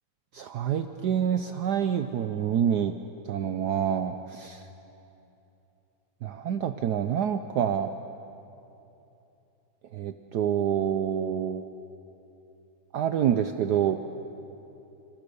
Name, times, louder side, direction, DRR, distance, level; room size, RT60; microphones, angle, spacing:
voice 1, 0.3-2.9 3.2-4.7 6.2-7.9 9.9-11.7 12.9-14.0, right 9 dB, 65° right, 9 dB, 1.2 m, -27 dB
30.0 x 26.0 x 6.9 m, 2.9 s
omnidirectional pair, 2.1 m